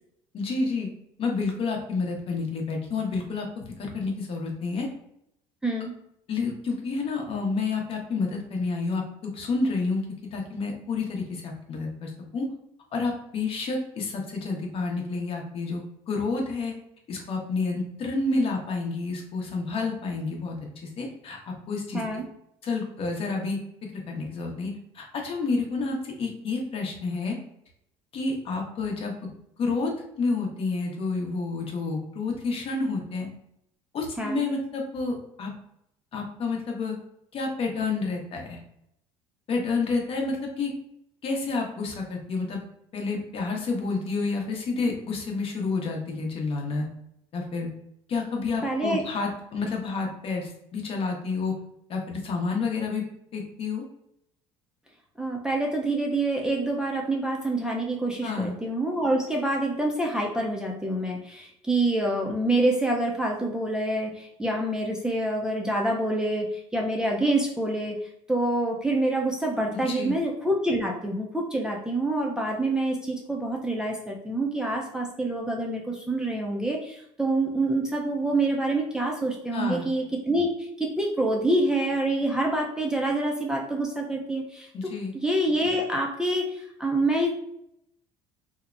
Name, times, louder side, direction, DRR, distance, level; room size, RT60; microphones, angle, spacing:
voice 1, 0.3-0.9 1.2-4.9 6.3-10.0 10.3-12.5 12.9-16.8 17.1-20.5 20.8-21.4 21.7-22.0 22.6-23.6 23.9-27.4 28.1-29.1 29.6-29.9 30.2-33.3 33.9-35.5 36.1-36.9 37.3-38.6 39.5-40.7 41.2-42.6 42.9-46.9 47.3-47.7 48.1-51.5 51.9-53.0 53.3-53.9 58.2-58.5 69.7-70.1 79.5-79.8 84.7-85.1, left 3 dB, 45° left, 1 dB, 0.8 m, -29 dB
voice 2, 5.6-5.9 21.9-22.2 34.2-34.4 48.6-49.0 55.2-68.0 68.3-84.7 85.2-87.3, right 1 dB, 5° right, -2 dB, 0.4 m, -26 dB
2.8 x 2.1 x 2.4 m, 0.77 s
supercardioid pair, 80°, 13 cm